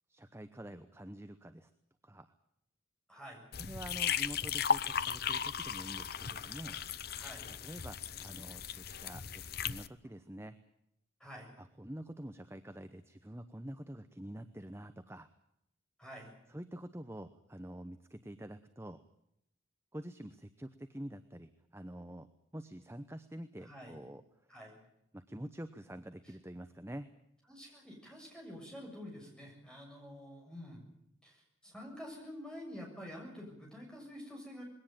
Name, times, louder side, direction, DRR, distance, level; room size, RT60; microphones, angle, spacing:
voice 1, 0.1-1.7 2.0-2.3 3.6-6.8 7.6-10.6 11.6-15.3 16.5-19.0 19.9-22.3 22.5-24.5 25.1-27.1, right 1 dB, 15° right, 9 dB, 0.8 m, -47 dB
voice 2, 3.1-3.4 7.1-7.5 11.2-11.5 16.0-16.3 23.6-24.0 24.5-24.8 26.2-26.3 27.5-30.8 31.2-34.6, equal, 5° left, 0 dB, 7.1 m, -48 dB
sound 1, 3.5-9.9, left 7 dB, 50° left, 0.8 m, -36 dB
21.5 x 17.5 x 9.0 m, 0.78 s
head